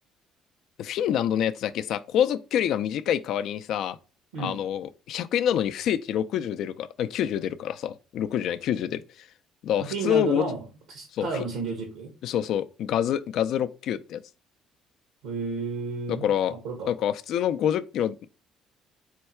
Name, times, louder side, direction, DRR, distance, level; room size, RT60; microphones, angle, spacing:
voice 1, 0.8-4.0 4.4-9.3 9.6-10.5 11.1-11.3 12.2-14.2 16.2-16.5 16.9-18.2, left 10 dB, 70° left, 0.3 m, -27 dB
voice 2, 9.8-12.1 15.2-16.9, right 3 dB, 85° right, 1.1 m, -32 dB
4.4 x 2.3 x 4.3 m
supercardioid pair, 70°, 0 cm